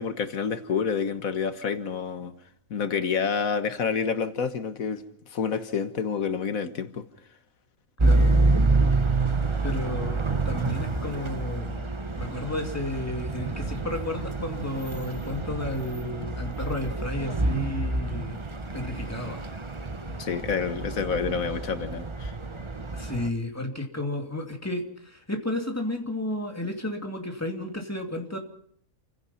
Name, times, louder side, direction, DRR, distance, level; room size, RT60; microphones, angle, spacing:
voice 1, 0.0-2.3 2.7-5.0 5.3-7.1 20.2-22.3, left 6 dB, 85° left, 9 dB, 1.8 m, -28 dB
sound 1, 8.0-23.3, right 3 dB, 25° right, 1.1 m, -27 dB
voice 2, 9.6-10.2 10.4-11.9 12.2-18.4 18.7-19.4 22.9-28.4, left 1 dB, 10° left, 3 dB, 2.7 m, -32 dB
28.5 x 16.5 x 5.7 m, 0.65 s
omnidirectional pair, 1.4 m